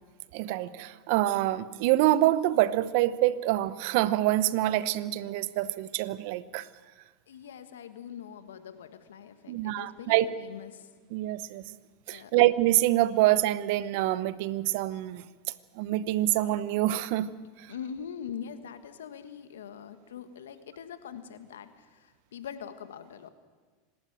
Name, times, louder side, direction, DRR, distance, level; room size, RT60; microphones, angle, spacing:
voice 1, 0.3-6.7 9.5-10.3 11.1-11.7 12.1-15.2 15.8-17.3, right 15 dB, 65° right, 16 dB, 0.9 m, -26 dB
voice 2, 7.3-10.9 12.1-12.3 17.7-23.3, left 8 dB, 85° left, 10 dB, 1.6 m, -43 dB
26.0 x 12.5 x 9.1 m, 1.4 s
hypercardioid pair, 105°, 0 cm